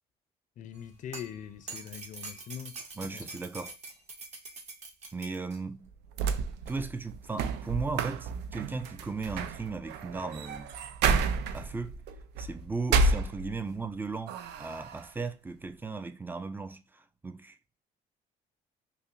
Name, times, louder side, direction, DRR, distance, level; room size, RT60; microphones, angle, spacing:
voice 1, 0.6-3.3, left 9 dB, 50° left, 0.5 m, -43 dB
sound 1, 0.7-5.6 6.7-6.8, right 3 dB, 40° right, 1.0 m, -45 dB
voice 2, 3.0-3.8 5.1-5.9 6.7-10.7 11.5-12.0 12.4-17.6, right 4 dB, 10° right, 0.3 m, -36 dB
sound 2, 5.9-13.9 14.3-15.1, right 4 dB, 85° right, 0.4 m, -31 dB
5.5 x 2.0 x 2.5 m
cardioid pair, 110°, 17 cm